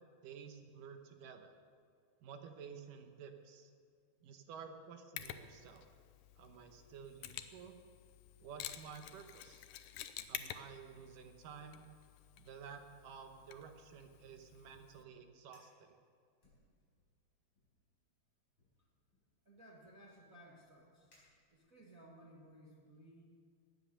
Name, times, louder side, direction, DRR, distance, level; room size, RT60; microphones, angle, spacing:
voice 1, 0.2-1.6 2.2-3.7 4.2-5.9 6.4-7.7 8.4-9.6 10.3-11.9 12.4-16.0, right 6 dB, 75° right, 6 dB, 2.4 m, -52 dB
Mechanisms, 5.2-15.0, left 11 dB, 75° left, 2.0 m, -51 dB
Fire, 15.5-15.8 16.4-17.2 17.5-17.9 18.6-21.9, left 1 dB, 30° left, 5.4 m, -73 dB
voice 2, 19.4-21.2 21.5-23.2, right 1 dB, 45° right, -4 dB, 1.1 m, -59 dB
16.5 x 9.8 x 6.6 m, 2.2 s
omnidirectional pair, 4.1 m